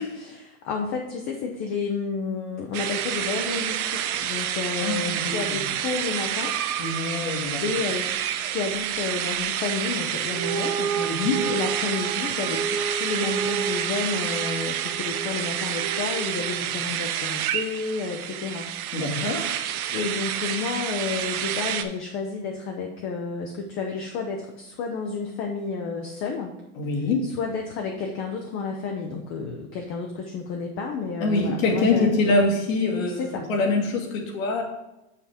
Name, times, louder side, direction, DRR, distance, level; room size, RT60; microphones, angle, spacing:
voice 1, 0.0-6.5 7.6-18.7 19.9-26.5 27.2-32.1 33.1-33.5, left 4 dB, 30° left, 2 dB, 0.6 m, -31 dB
sound 1, 2.7-21.8, right 10 dB, 90° right, 0.8 m, -29 dB
voice 2, 4.8-5.4 6.8-7.7 11.0-11.5 18.9-19.5 26.8-27.3 31.2-34.6, left 3 dB, 70° left, 0 dB, 2.2 m, -24 dB
sound 2, 10.3-16.8, right 5 dB, 50° right, 1.7 m, -32 dB
5.9 x 5.8 x 4.9 m, 0.91 s
supercardioid pair, 150°, 42 cm